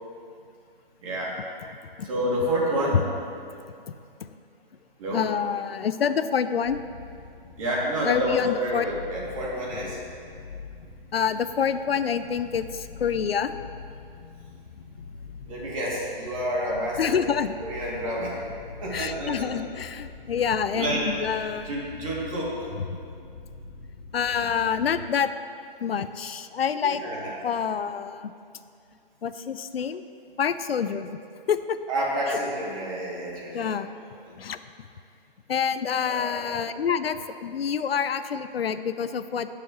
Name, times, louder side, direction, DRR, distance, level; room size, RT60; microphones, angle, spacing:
voice 1, 1.0-1.4 2.0-3.0 5.0-5.2 7.6-10.0 15.5-17.2 17.6-18.4 18.8-19.6 20.7-21.0 21.6-22.7 26.8-27.3 31.9-33.7 36.0-36.8, equal, 35° right, -5 dB, 2.6 m, -29 dB
voice 2, 5.1-6.8 8.0-8.9 11.1-13.5 17.0-17.5 18.9-21.7 24.1-25.3 25.8-27.0 27.4-28.3 29.2-30.1 30.4-31.2 31.5-31.8 32.3-32.4 33.5-33.9 34.3-34.6 35.5-39.5, left 7 dB, 85° left, 12 dB, 0.6 m, -27 dB
sound 1, 6.7-25.1, left 5 dB, 60° left, 1.1 m, -44 dB
17.5 x 7.0 x 3.1 m, 2.4 s
hypercardioid pair, 160°, 29 cm